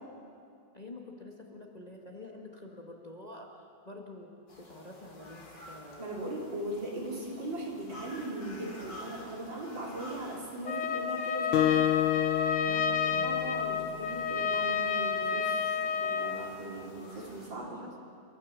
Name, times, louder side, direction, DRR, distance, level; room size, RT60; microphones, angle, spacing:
voice 1, 0.7-4.3 4.6-6.1 12.7-13.4 17.6-18.0, left 2 dB, 20° left, 0 dB, 1.9 m, -47 dB
sound 1, 4.5-17.5, left 1 dB, 65° left, 3.8 m, -51 dB
voice 2, 6.0-11.8 13.2-17.8, right 1 dB, 75° right, -3 dB, 4.6 m, -39 dB
Trumpet, 10.6-16.5, left 6 dB, 40° left, 2.0 m, -30 dB
Acoustic guitar, 11.5-14.3, left 13 dB, 90° left, 1.5 m, -30 dB
28.5 x 13.5 x 7.4 m, 2.4 s
omnidirectional pair, 2.1 m